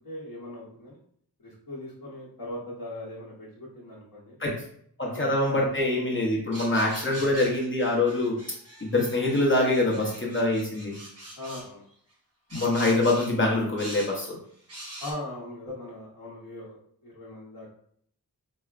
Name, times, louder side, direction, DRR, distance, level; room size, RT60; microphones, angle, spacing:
voice 1, 0.0-1.0 1.4-4.4 5.1-5.3 6.7-6.9 11.4-11.8 15.0-16.8 17.0-17.7, left 1 dB, 65° left, -7 dB, 0.9 m, -40 dB
voice 2, 5.0-8.4 8.8-10.9 12.5-14.4, left 2 dB, 30° left, -3 dB, 0.7 m, -24 dB
sound 1, 6.5-11.7 12.5-13.3 13.8-14.1 14.7-15.1, right 1 dB, 40° right, 0.9 m, -43 dB
4.4 x 2.0 x 2.3 m, 0.65 s
wide cardioid pair, 85°, 39 cm